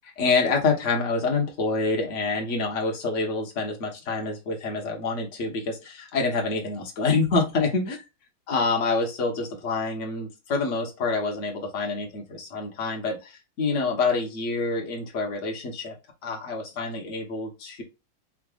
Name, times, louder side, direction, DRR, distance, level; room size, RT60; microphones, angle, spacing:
voice 1, 0.2-8.0 8.5-16.0 16.2-17.8, left 4 dB, 45° left, 1 dB, 1.3 m, -27 dB
4.9 x 3.3 x 2.4 m, 0.26 s
omnidirectional pair, 2.2 m